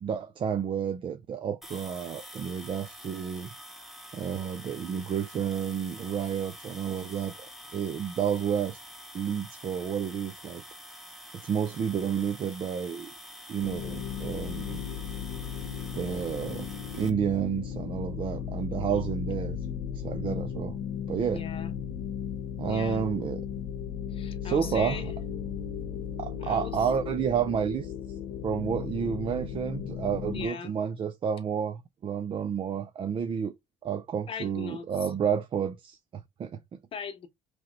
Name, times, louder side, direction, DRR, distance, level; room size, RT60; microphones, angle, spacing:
voice 1, 0.0-3.5 4.1-7.3 7.7-8.8 9.1-10.6 11.3-13.1 13.5-14.8 15.9-16.7 16.9-19.6 19.9-20.8 21.1-21.4 22.6-23.4 24.4-25.1 26.2-27.9 28.4-33.5 33.8-36.8, right 7 dB, 40° right, 0.4 m, -30 dB
sound 1, 1.6-17.1, equal, ahead, 0.7 m, -47 dB
sound 2, 13.6-30.5, left 8 dB, 85° left, 0.8 m, -36 dB
voice 2, 21.3-21.7 22.6-23.1 24.1-25.1 26.4-26.9 30.3-30.7 34.3-35.1 36.9-37.3, left 7 dB, 45° left, 0.9 m, -39 dB
3.1 x 2.9 x 3.8 m
cardioid pair, 115°, 13 cm